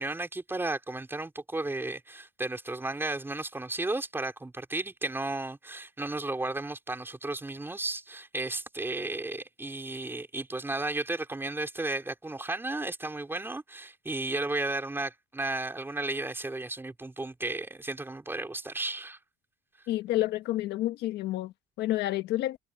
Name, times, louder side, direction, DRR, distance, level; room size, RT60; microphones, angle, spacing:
voice 1, 0.0-19.2, right 2 dB, 15° right, 4.4 m, -34 dB
voice 2, 19.9-22.6, left 15 dB, 80° left, 1.4 m, -29 dB
cardioid pair, 110°, 17 cm